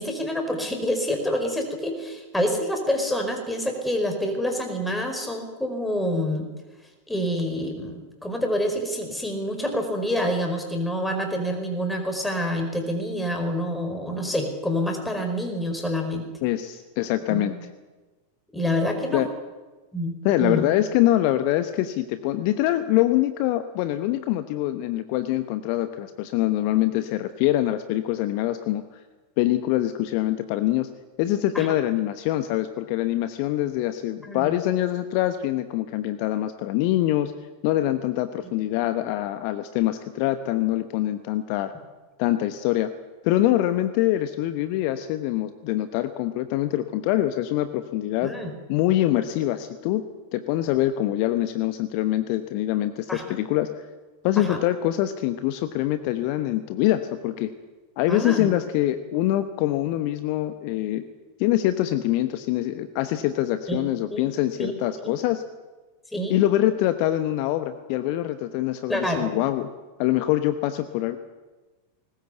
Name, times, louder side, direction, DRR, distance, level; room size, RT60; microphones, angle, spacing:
voice 1, 0.0-6.5 7.1-16.2 17.3-17.5 18.5-19.2 19.9-20.1 20.4-20.6 31.5-31.7 34.2-34.5 48.2-48.5 53.1-53.2 54.4-54.6 58.1-58.5 63.7-63.8 64.1-64.3 64.6-64.7 65.0-65.1 66.1-66.4 68.9-69.3, equal, 5° left, 4 dB, 4.8 m, -27 dB
voice 2, 16.4-17.5 19.1-19.3 20.2-28.8 29.4-30.9 31.2-37.3 37.6-41.7 42.2-42.9 43.2-48.3 48.7-50.0 50.3-53.9 54.2-57.5 58.0-61.0 61.4-65.4 66.3-69.7 70.0-71.2, left 14 dB, 45° left, 11 dB, 1.1 m, -24 dB
21.0 x 19.0 x 8.1 m, 1.2 s
figure-of-eight pair, 90°, 0 cm